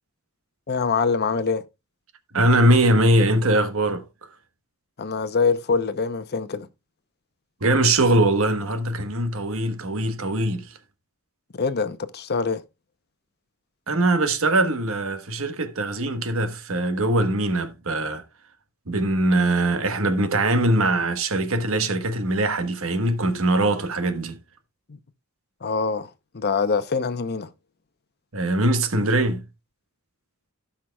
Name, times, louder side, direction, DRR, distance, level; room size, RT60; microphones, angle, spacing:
voice 1, 0.7-1.6 5.0-6.7 11.5-12.6 25.6-26.1 26.3-27.5, left 5 dB, 50° left, 0.7 m, -24 dB
voice 2, 2.3-4.0 7.6-10.8 13.9-18.2 18.9-24.4 28.3-29.4, right 1 dB, 70° right, 1.3 m, -22 dB
17.0 x 5.7 x 2.3 m
head